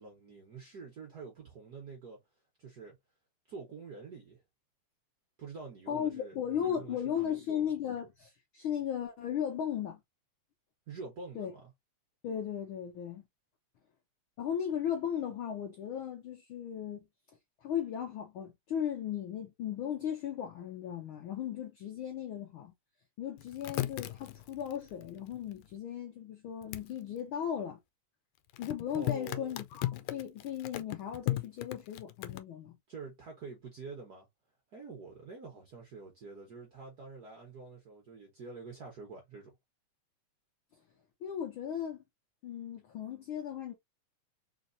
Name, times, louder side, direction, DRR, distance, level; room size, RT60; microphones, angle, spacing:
voice 1, 0.0-2.2 2.6-3.0 3.5-4.4 5.4-7.7 10.9-11.7 28.9-29.7 32.9-34.3 34.7-39.5, right 4 dB, 80° right, 0.8 m, -47 dB
voice 2, 5.9-10.0 11.3-11.5 12.2-13.2 14.4-17.1 17.6-22.7 23.2-27.8 28.6-32.8 41.2-42.0 42.4-43.7, left 9 dB, 70° left, 1.3 m, -36 dB
sound 1, 23.4-25.7 26.6-26.9 28.5-32.4, left 16 dB, 85° left, 1.9 m, -37 dB
4.4 x 3.1 x 2.6 m
omnidirectional pair, 3.3 m